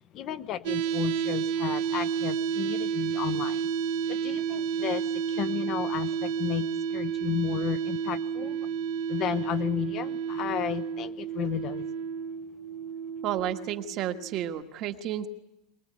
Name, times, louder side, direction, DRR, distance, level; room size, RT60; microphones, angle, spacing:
voice 1, 0.0-3.7 4.1-8.7 9.1-11.9, left 10 dB, 35° left, 1.1 m, -33 dB
sound 1, 0.6-14.6, right 7 dB, 60° right, 1.3 m, -31 dB
voice 2, 13.2-15.3, right 11 dB, 40° right, 1.6 m, -31 dB
23.5 x 20.5 x 9.9 m
supercardioid pair, 155°, 0 cm